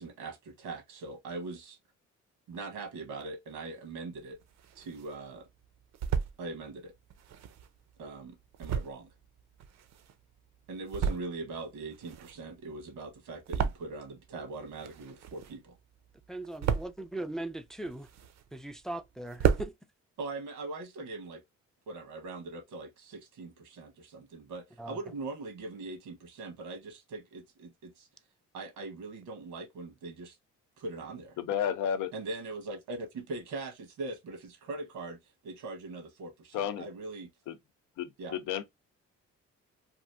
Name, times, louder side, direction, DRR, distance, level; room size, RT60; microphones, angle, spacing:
voice 1, 0.0-1.8 2.5-4.4 4.7-5.5 6.4-6.9 8.0-9.1 10.7-15.8 20.2-21.4 21.9-28.1 28.5-30.4 30.8-31.4 32.1-37.3 38.2-38.4, right 3 dB, 90° right, 1.2 m, -41 dB
sound 1, 4.2-5.2 5.6-6.4 7.1-10.3 10.7-11.5 11.8-14.3 14.5-15.8 16.1-17.1 17.6-18.7 19.0-19.1 19.3-19.7, right 7 dB, 60° right, 0.5 m, -33 dB
voice 2, 16.3-18.1 18.5-19.7 24.8-25.0, right 1 dB, ahead, 0.3 m, -39 dB
voice 3, 31.4-32.1 36.5-36.9 37.5-37.6 38.0-38.6, left 9 dB, 85° left, 0.6 m, -32 dB
3.0 x 2.5 x 2.4 m
cardioid pair, 90°, 30 cm